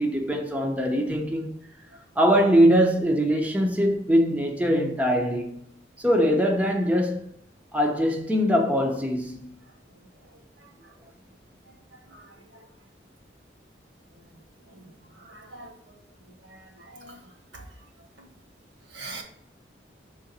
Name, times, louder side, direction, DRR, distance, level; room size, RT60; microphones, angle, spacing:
voice 1, 0.0-1.5 2.2-5.6 6.0-7.3 7.7-9.5, equal, 10° right, 0.7 m, -22 dB
voice 2, 15.2-15.7 16.4-17.2 17.5-17.6 18.9-19.2, right 3 dB, 75° right, 1.5 m, -43 dB
6.1 x 3.9 x 4.1 m
head